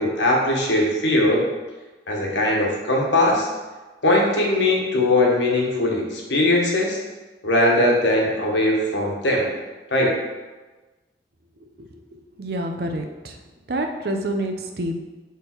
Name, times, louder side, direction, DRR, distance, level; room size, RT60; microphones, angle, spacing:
voice 1, 0.0-1.4 2.1-3.5 4.0-7.0 7.4-9.5 9.9-10.1, left 1 dB, 85° left, -1 dB, 1.3 m, -20 dB
voice 2, 12.4-13.3 13.7-15.0, right 1 dB, 60° right, 4 dB, 0.6 m, -27 dB
6.2 x 3.5 x 4.5 m, 1.2 s
head